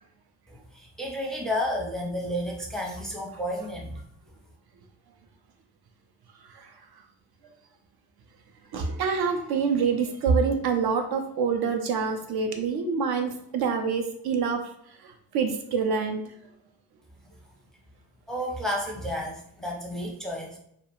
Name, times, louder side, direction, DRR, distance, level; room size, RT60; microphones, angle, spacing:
voice 1, 0.5-4.0 18.3-20.6, equal, ahead, -1 dB, 0.5 m, -31 dB
voice 2, 6.4-6.7 7.4-7.5 8.7-14.6 15.0-16.3, right 5 dB, 60° right, 4 dB, 0.5 m, -26 dB
2.4 x 2.1 x 2.9 m, 0.73 s
cardioid pair, 70°, 42 cm